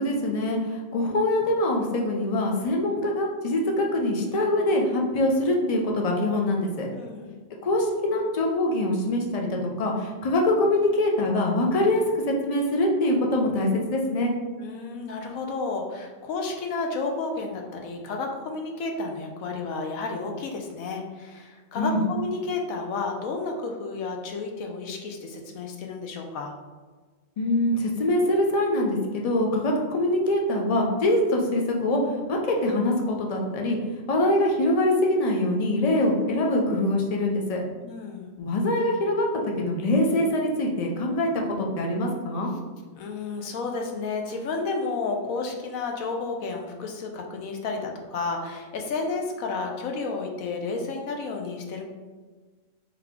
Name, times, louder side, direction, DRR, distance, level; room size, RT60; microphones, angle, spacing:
voice 1, 0.0-6.9 7.6-12.0 12.4-14.3 21.7-22.0 27.4-32.0 32.3-37.6 38.4-42.5, left 1 dB, 55° left, 0 dB, 0.4 m, -24 dB
voice 2, 6.9-7.4 14.6-26.5 37.8-38.3 42.9-51.8, left 3 dB, 80° left, 2 dB, 1.1 m, -31 dB
3.8 x 2.9 x 3.6 m, 1.3 s
omnidirectional pair, 1.4 m